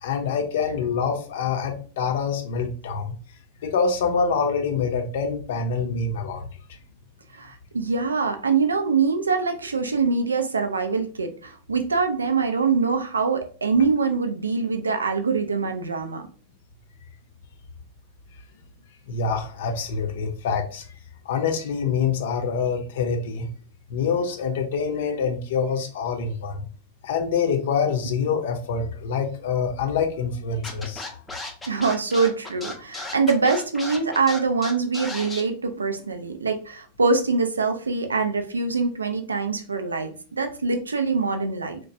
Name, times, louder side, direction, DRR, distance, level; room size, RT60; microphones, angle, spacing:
voice 1, 0.0-3.1 3.6-6.5 19.1-21.0 21.3-23.5 23.9-26.7 27.0-31.2, left 5 dB, 55° left, 3 dB, 0.5 m, -26 dB
voice 2, 7.3-16.3 31.7-41.8, right 4 dB, 75° right, 6 dB, 0.4 m, -24 dB
Scratching (performance technique), 30.6-35.4, left 2 dB, 10° left, 0.5 m, -34 dB
2.9 x 2.1 x 2.6 m, 0.41 s
figure-of-eight pair, 90°, 0 cm